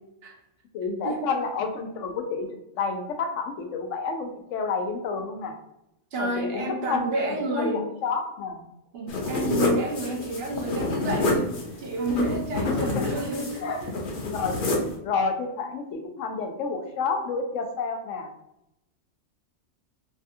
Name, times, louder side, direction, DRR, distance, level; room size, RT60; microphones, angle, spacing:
voice 1, 0.7-5.5 6.2-8.7 12.7-13.1 13.6-13.8 14.3-14.6 15.0-18.3, left 4 dB, 85° left, 5 dB, 0.9 m, -30 dB
voice 2, 6.1-7.9 8.9-13.9, right 1 dB, 65° right, 2 dB, 0.8 m, -30 dB
sound 1, 9.1-15.0, left 2 dB, 55° left, 0.7 m, -28 dB
3.4 x 2.3 x 2.6 m, 0.83 s
omnidirectional pair, 1.2 m